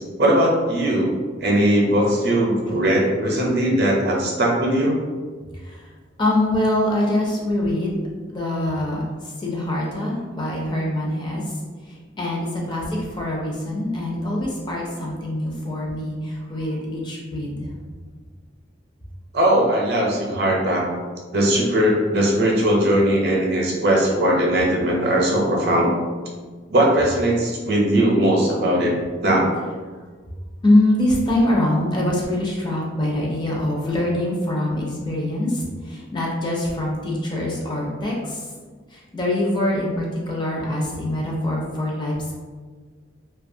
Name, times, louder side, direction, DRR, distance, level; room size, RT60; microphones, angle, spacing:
voice 1, 0.2-1.1 1.4-5.0 19.3-20.9 21.3-25.9 26.7-28.9 29.2-29.5, right 1 dB, 60° right, -2 dB, 0.6 m, -19 dB
voice 2, 6.2-8.0 8.3-11.6 11.9-17.7 30.6-38.4 38.9-42.3, left 1 dB, 25° left, -3 dB, 0.4 m, -24 dB
2.6 x 2.2 x 2.6 m, 1.5 s
head